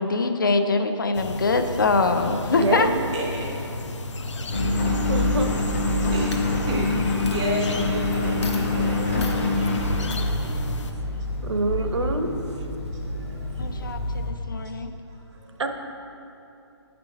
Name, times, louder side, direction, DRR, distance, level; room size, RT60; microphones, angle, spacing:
voice 1, 0.0-2.9 13.6-14.9, left 3 dB, 45° left, 7 dB, 0.5 m, -23 dB
sound 1, 1.1-10.9, left 2 dB, 85° left, 0.7 m, -33 dB
voice 2, 2.5-3.1 5.1-5.5 11.4-12.3 15.6-15.7, right 3 dB, 75° right, 5 dB, 0.9 m, -25 dB
voice 3, 3.1-3.7 4.1-5.0 5.9-9.9 10.4-10.8 11.0-11.1 12.9-14.3 15.1-15.5, right 1 dB, 10° right, -4 dB, 0.5 m, -34 dB
Engine, 4.5-14.3, left 2 dB, 30° left, 0.9 m, -26 dB
Coin (dropping), 6.3-6.9 7.3-7.4 8.1-8.2 8.4-8.7 9.2-9.4 10.1-10.2, left 4 dB, 70° left, 1.0 m, -38 dB
9.7 x 5.2 x 4.6 m, 2.8 s
hypercardioid pair, 175°, 15 cm